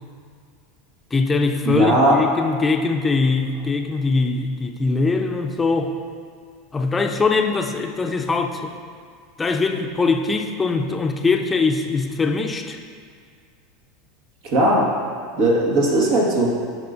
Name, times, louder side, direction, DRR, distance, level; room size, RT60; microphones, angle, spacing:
voice 1, 1.1-6.0 6.7-8.7 9.4-12.8, left 4 dB, 20° left, 4 dB, 0.6 m, -22 dB
voice 2, 1.6-2.2 14.4-14.9 15.4-16.5, right 1 dB, 60° right, -3 dB, 1.7 m, -18 dB
11.5 x 4.8 x 2.7 m, 2.1 s
hypercardioid pair, 85°, 0 cm